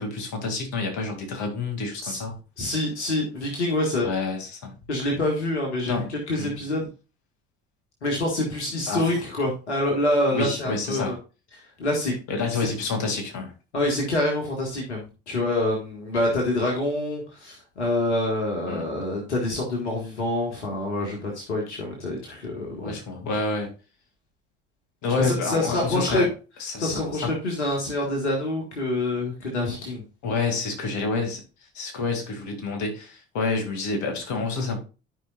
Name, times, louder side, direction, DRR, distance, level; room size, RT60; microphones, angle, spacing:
voice 1, 0.0-2.4 4.0-4.7 5.8-6.1 6.4-6.5 8.9-9.1 10.3-11.1 12.3-13.5 18.7-18.9 22.8-23.7 25.0-26.3 26.6-27.3 30.2-31.4 31.7-34.8, left 3 dB, 55° left, 4 dB, 2.3 m, -28 dB
voice 2, 2.6-4.1 4.9-6.9 8.0-11.2 11.5-12.2 13.7-23.0 25.2-26.3 26.8-30.0, left 1 dB, 85° left, 0 dB, 1.7 m, -26 dB
13.5 x 5.1 x 2.4 m, 0.32 s
figure-of-eight pair, 55°, 34 cm